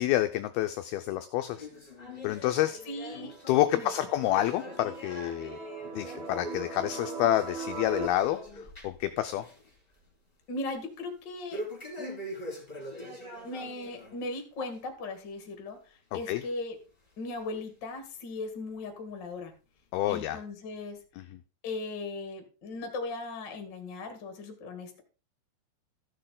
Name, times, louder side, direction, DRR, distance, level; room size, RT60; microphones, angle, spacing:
voice 1, 0.0-1.7 2.2-2.8 3.5-5.6 6.0-8.4 8.8-9.4 16.3-16.4 19.9-20.4, left 14 dB, 85° left, 8 dB, 2.2 m, -28 dB
sound 1, 1.5-9.1 9.4-9.7 10.1-10.2 11.5-14.2 14.6-14.8 15.4-15.5 16.4-16.5 17.3-17.4, left 1 dB, 15° left, 3.4 m, -42 dB
sound 2, 2.5-8.1, right 6 dB, 70° right, 1.2 m, -42 dB
voice 2, 2.9-3.3 3.8-3.9 10.5-11.6 12.0-12.2 13.4-16.8 17.2-19.5 20.1-21.0 21.6-25.0, left 2 dB, 35° left, 5 dB, 1.9 m, -38 dB
15.0 x 6.6 x 3.9 m, 0.34 s
omnidirectional pair, 5.1 m